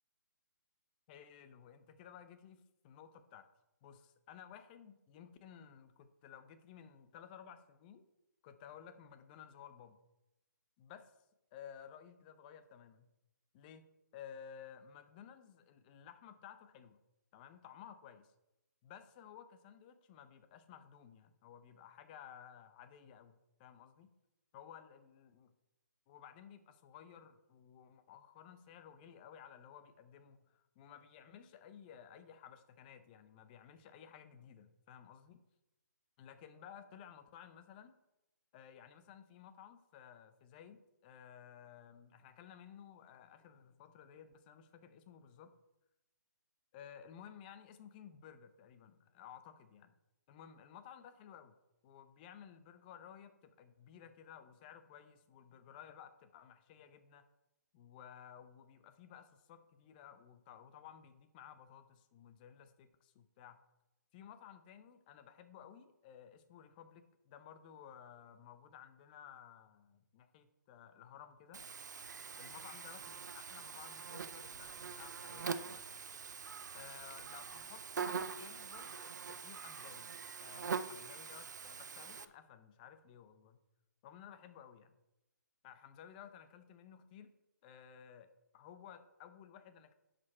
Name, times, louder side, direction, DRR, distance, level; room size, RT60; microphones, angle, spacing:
voice 1, 1.1-3.5 3.8-8.1 8.4-10.0 10.8-11.2 11.5-13.0 13.5-17.0 17.3-18.3 18.8-24.1 24.5-25.5 26.1-35.4 36.2-37.9 38.5-45.5 46.7-49.9 50.3-51.6 51.8-57.2 57.7-63.6 64.1-71.6 72.4-76.0 76.7-80.1 80.4-83.6 84.0-85.0 85.6-87.3 87.6-89.9, left 8 dB, 30° left, 10 dB, 0.7 m, -56 dB
Buzz, 71.5-82.2, right 6 dB, 65° right, 0.5 m, -44 dB
10.5 x 5.2 x 4.3 m, 0.94 s
figure-of-eight pair, 145°, 10 cm